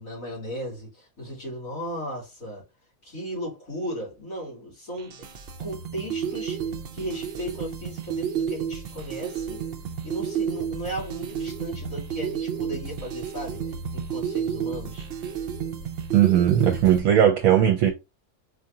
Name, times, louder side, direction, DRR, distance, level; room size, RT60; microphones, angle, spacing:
voice 1, 0.0-2.6 3.0-5.2 5.6-6.6 6.9-9.6 10.0-13.6 13.9-15.1, equal, 75° left, 3.3 m, -36 dB
sound 1, 5.0-17.0, right 8 dB, 55° right, 0.7 m, -31 dB
voice 2, 16.1-17.9, right 10 dB, 75° right, 1.1 m, -18 dB
4.9 x 2.5 x 2.7 m
omnidirectional pair, 1.5 m